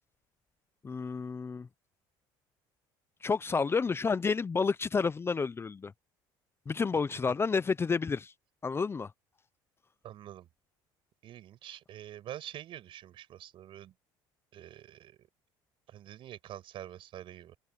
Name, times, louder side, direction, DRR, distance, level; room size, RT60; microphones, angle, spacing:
voice 1, 0.8-1.7 3.2-5.9 6.7-8.3 8.6-9.1, left 5 dB, 25° left, 0.7 m, -30 dB
voice 2, 10.0-10.5 11.2-13.9 14.5-15.3 15.9-17.6, right 12 dB, 60° right, 7.2 m, -46 dB
open air
supercardioid pair, 95°, 10 cm